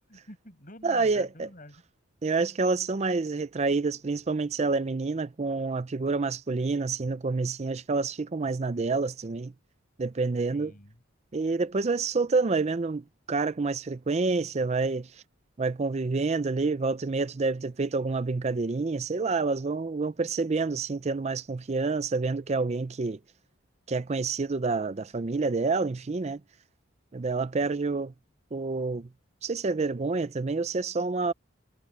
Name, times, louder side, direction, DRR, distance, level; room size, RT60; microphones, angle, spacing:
voice 1, 0.0-1.8 10.5-11.0, left 2 dB, 40° left, 7.0 m, -46 dB
voice 2, 0.8-1.5 2.2-9.5 10.0-10.7 11.3-15.2 15.6-23.2 23.9-26.4 27.1-28.1 28.5-29.1 29.4-31.3, right 3 dB, 30° right, 0.5 m, -28 dB
head